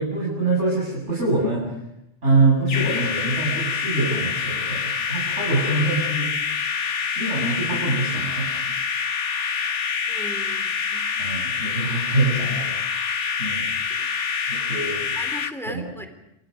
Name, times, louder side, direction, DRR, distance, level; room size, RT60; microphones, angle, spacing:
voice 1, 0.0-1.7 2.2-6.3 7.2-8.5 11.2-12.7 13.4-13.6 14.5-15.1 15.7-15.8, right 2 dB, 75° right, -4 dB, 8.1 m, -24 dB
sound 1, 2.7-15.5, left 6 dB, 75° left, 1.5 m, -26 dB
voice 2, 10.1-11.1 14.0-14.1 15.1-16.1, equal, ahead, 6 dB, 3.7 m, -37 dB
28.5 x 26.0 x 5.3 m, 0.84 s
omnidirectional pair, 1.2 m